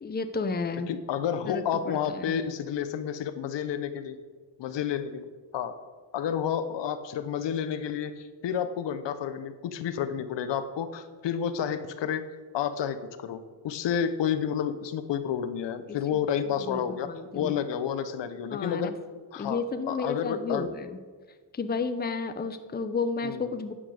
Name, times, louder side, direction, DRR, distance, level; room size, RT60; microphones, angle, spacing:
voice 1, 0.0-0.9 1.4-2.3 15.9-16.0 16.6-17.5 18.5-18.9 19.4-20.9 21.5-23.7, left 4 dB, 20° left, 9 dB, 0.8 m, -32 dB
voice 2, 0.9-4.2 4.6-5.8 6.1-12.2 12.5-18.9 19.3-20.7 23.2-23.4, left 8 dB, 70° left, 11 dB, 1.0 m, -30 dB
9.8 x 9.4 x 6.5 m, 1.5 s
cardioid pair, 100°, 45 cm